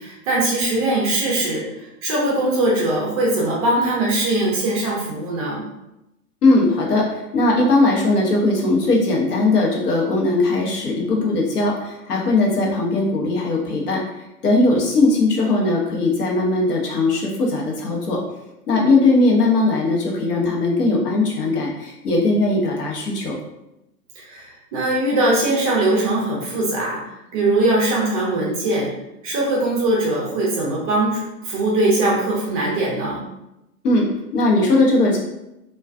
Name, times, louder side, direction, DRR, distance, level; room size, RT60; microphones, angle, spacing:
voice 1, 0.0-5.7 24.2-27.0 27.3-28.9 29.2-33.2, right 2 dB, 25° right, -4 dB, 0.4 m, -21 dB
voice 2, 6.4-14.0 14.4-18.2 18.7-23.4 33.8-34.1 34.3-35.2, left 2 dB, 75° left, -1 dB, 0.8 m, -19 dB
2.3 x 2.3 x 2.3 m, 0.91 s
figure-of-eight pair, 105°, 47 cm